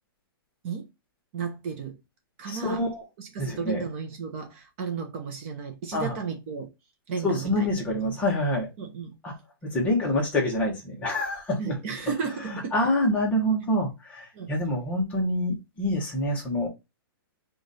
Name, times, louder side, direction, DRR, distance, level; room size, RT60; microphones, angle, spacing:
voice 1, 1.3-2.0 2.4-2.8 3.2-6.7 7.1-8.2 8.8-9.1 11.6-12.7 14.3-14.5, right 6 dB, 30° right, 0.8 m, -34 dB
voice 2, 2.5-3.0 3.4-3.9 5.9-6.2 7.2-8.7 9.2-9.4 9.6-11.8 12.4-16.7, left 1 dB, 10° left, 1.1 m, -26 dB
4.9 x 2.5 x 4.0 m
hypercardioid pair, 170°, 13 cm